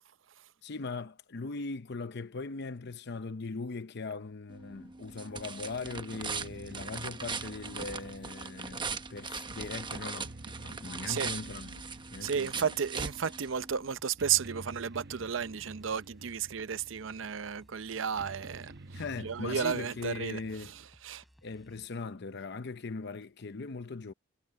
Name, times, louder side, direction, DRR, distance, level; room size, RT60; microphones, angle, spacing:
voice 1, 0.6-10.3 10.6-11.7 12.1-12.8 18.9-20.7 21.4-24.1, left 4 dB, 60° left, 0.7 m, -40 dB
sound 1, 4.5-13.9, right 5 dB, 25° right, 1.0 m, -40 dB
sound 2, 5.2-20.9, right 2 dB, 55° right, 1.0 m, -51 dB
sound 3, 9.1-21.9, equal, ahead, 7.0 m, -62 dB
voice 2, 12.2-18.7 19.2-20.4 21.0-21.2, right 7 dB, 75° right, 0.6 m, -33 dB
head